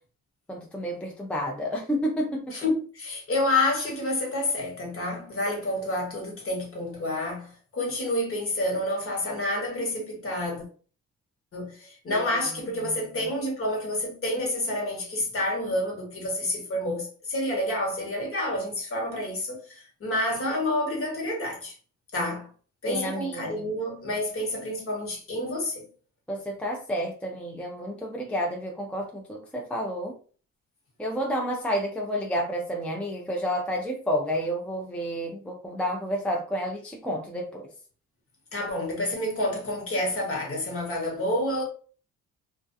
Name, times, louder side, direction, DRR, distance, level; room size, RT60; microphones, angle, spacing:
voice 1, 0.5-2.5 12.1-12.2 13.2-13.3 22.9-23.7 26.3-30.1 31.0-37.7, equal, 5° left, 0.5 m, -30 dB
voice 2, 2.5-10.6 11.5-21.7 22.1-22.5 22.8-25.9 38.5-41.6, left 1 dB, 45° left, 1.2 m, -29 dB
2.4 x 2.2 x 2.6 m
cardioid pair, 90°, 30 cm